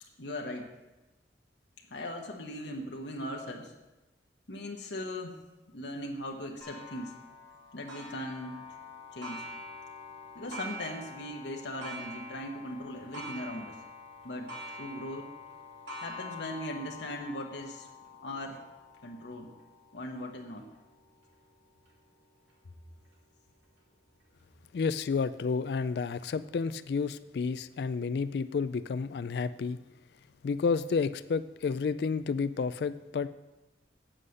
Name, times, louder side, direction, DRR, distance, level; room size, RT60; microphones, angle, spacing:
voice 1, 0.2-0.7 1.8-3.7 4.5-5.4 5.7-7.1 7.7-8.7 9.1-9.5 10.3-13.8 14.2-14.5 14.8-15.3 16.0-17.9 18.2-18.6 19.0-19.5 19.9-20.7, left 1 dB, 75° left, 1 dB, 1.1 m, -39 dB
Clock, 6.6-21.9 22.5-22.6 23.1-23.2 24.2-24.3, left 1 dB, 90° right, 2.6 m, -46 dB
voice 2, 24.7-29.8 30.4-33.3, left 5 dB, 60° left, 13 dB, 0.3 m, -30 dB
8.1 x 7.6 x 6.4 m, 1.1 s
head